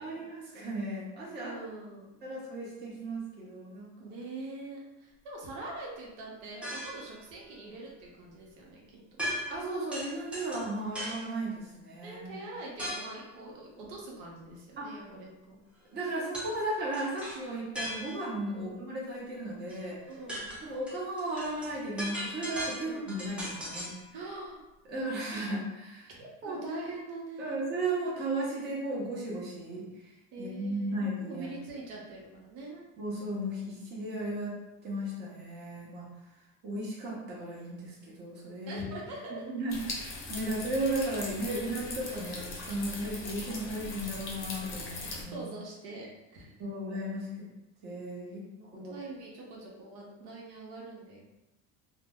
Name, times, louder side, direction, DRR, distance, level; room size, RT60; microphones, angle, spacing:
voice 1, 0.0-1.5 2.2-4.1 9.5-12.3 14.8-14.9 15.9-20.0 20.6-24.0 24.9-26.1 26.5-26.6 27.4-29.9 30.4-31.6 33.0-36.1 36.6-38.8 39.5-45.5 46.6-47.3 47.8-48.5 48.7-48.9, right 1 dB, 30° right, -5 dB, 0.8 m, -35 dB
voice 2, 1.4-2.2 4.0-9.0 12.0-15.6 18.5-18.8 20.1-20.6 22.8-23.0 24.1-24.6 26.2-27.5 30.3-32.9 38.7-39.4 45.3-46.5 48.3-51.2, right 2 dB, 70° right, -3 dB, 0.9 m, -43 dB
sound 1, 6.6-7.1 9.2-9.6 9.9-11.3 12.8-13.2 16.3-16.5 16.9-18.4 19.7-19.8 20.1-24.0, equal, 5° right, 0.4 m, -38 dB
sound 2, 39.7-45.2, left 2 dB, 35° left, 0.6 m, -40 dB
2.7 x 2.0 x 3.4 m, 0.96 s
cardioid pair, 155°, 35 cm